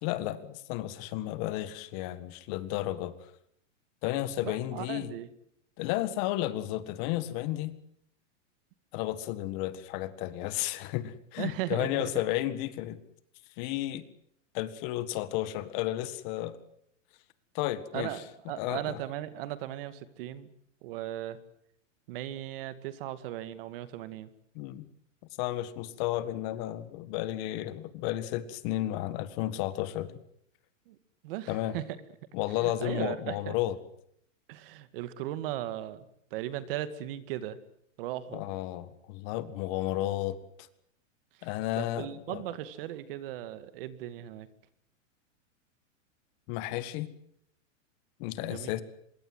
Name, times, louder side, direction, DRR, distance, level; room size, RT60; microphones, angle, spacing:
voice 1, 0.0-3.1 4.0-5.1 5.8-7.7 8.9-13.0 13.6-14.0 14.5-16.6 17.5-18.1 18.6-19.0 24.6-24.9 25.4-30.1 31.5-31.8 32.3-33.7 38.3-40.4 41.4-42.4 46.5-47.1 48.2-48.8, left 14 dB, 35° left, 14 dB, 1.8 m, -32 dB
voice 2, 4.4-5.3 11.4-12.2 17.9-20.5 20.8-21.4 22.1-24.3 30.9-31.0 31.2-31.8 32.5-33.6 34.5-36.1 36.3-37.6 38.0-38.4 41.4-41.5 41.8-44.5 48.4-48.7, right 13 dB, 45° right, 13 dB, 2.2 m, -37 dB
25.5 x 22.0 x 7.9 m, 0.69 s
supercardioid pair, 160°, 38 cm